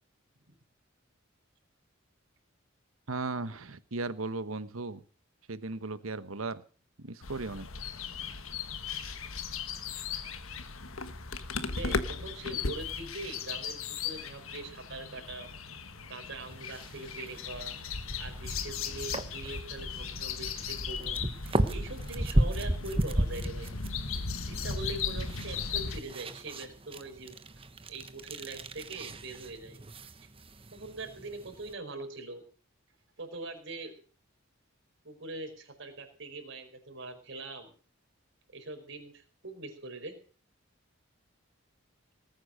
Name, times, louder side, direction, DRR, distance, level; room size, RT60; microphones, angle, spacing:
voice 1, 3.1-5.0 5.5-6.6 7.0-7.7, right 3 dB, 90° right, 14 dB, 1.2 m, -36 dB
sound 1, 7.2-26.0, left 5 dB, 80° left, 1.4 m, -37 dB
voice 2, 11.7-15.5 16.1-17.8 18.2-23.7 24.4-27.4 27.9-29.8 30.7-32.4 33.2-34.0 35.0-37.7 38.5-40.1, right 2 dB, 60° right, 3 dB, 5.0 m, -42 dB
sound 2, 16.4-31.7, right 1 dB, 25° right, 1.1 m, -35 dB
19.5 x 9.5 x 6.6 m, 0.40 s
head